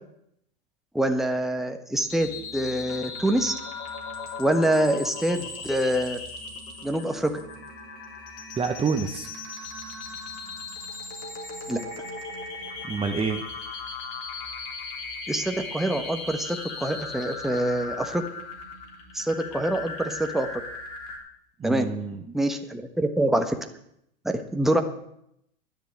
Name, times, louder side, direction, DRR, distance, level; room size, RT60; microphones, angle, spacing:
voice 1, 0.9-3.5 4.4-6.2 6.8-7.3 11.7-11.8 15.3-18.2 19.1-20.6 21.6-21.9 22.3-23.5 24.3-24.8, right 1 dB, ahead, 5 dB, 1.2 m, -25 dB
sound 1, 2.0-21.2, left 4 dB, 50° left, 3.5 m, -37 dB
voice 2, 8.6-9.3 12.8-13.4 21.6-22.4, right 5 dB, 20° right, 5 dB, 1.0 m, -28 dB
10.5 x 6.6 x 9.1 m, 0.76 s
hypercardioid pair, 95°, 29 cm